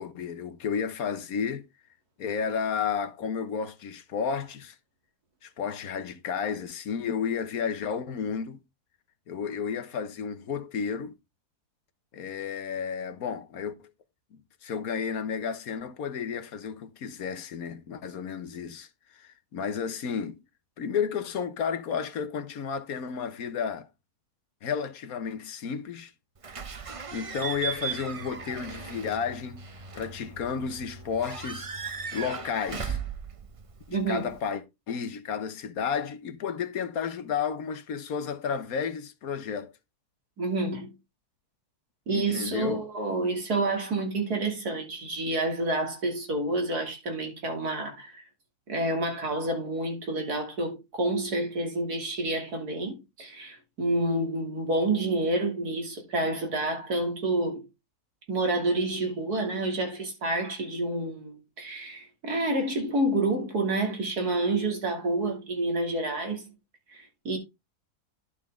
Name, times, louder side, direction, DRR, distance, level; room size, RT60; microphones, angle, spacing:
voice 1, 0.0-1.7 2.2-4.8 5.4-8.6 9.3-11.2 12.1-13.9 14.3-20.4 20.8-23.9 24.6-26.1 27.1-29.7 30.0-31.7 32.1-33.0 33.9-39.7 42.1-42.8, left 6 dB, 65° left, 1.4 m, -32 dB
Slam / Squeak / Alarm, 26.4-34.4, right 6 dB, 40° right, 0.5 m, -37 dB
voice 2, 33.9-34.3 40.4-40.9 42.1-48.2 48.7-57.7 58.3-66.5 66.9-67.4, right 2 dB, 75° right, 3.2 m, -29 dB
11.5 x 5.7 x 3.6 m
omnidirectional pair, 1.7 m